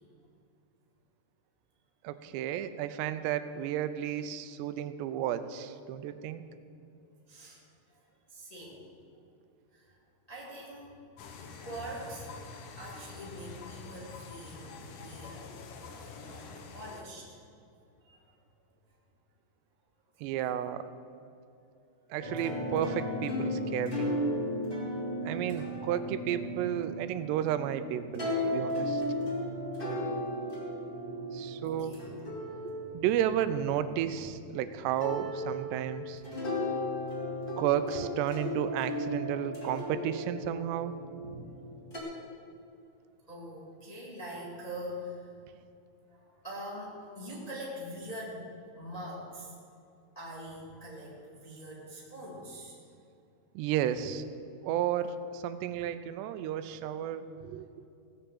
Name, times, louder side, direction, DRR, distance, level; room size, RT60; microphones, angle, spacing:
voice 1, 2.0-6.4 20.2-20.9 22.1-24.1 25.2-29.0 31.3-31.9 32.9-36.2 37.6-40.9 53.6-54.2 54.6-57.7, right 10 dB, 85° right, 11 dB, 2.7 m, -32 dB
voice 2, 7.3-7.6 7.9-8.9 9.7-10.0 10.3-11.0 11.6-12.3 12.8-15.6 16.1-16.5 16.7-17.4 18.0-18.3 31.4-32.1 41.2-41.4 43.3-45.3 46.1-48.5 48.8-49.6 50.1-52.8, equal, 30° left, -5 dB, 0.6 m, -44 dB
sound 1, 11.2-17.0, left 4 dB, 85° left, 1.7 m, -46 dB
sound 2, 22.2-34.5 35.0-42.0, left 1 dB, 15° left, 2.1 m, -35 dB
17.0 x 6.7 x 7.7 m, 2.6 s
omnidirectional pair, 5.0 m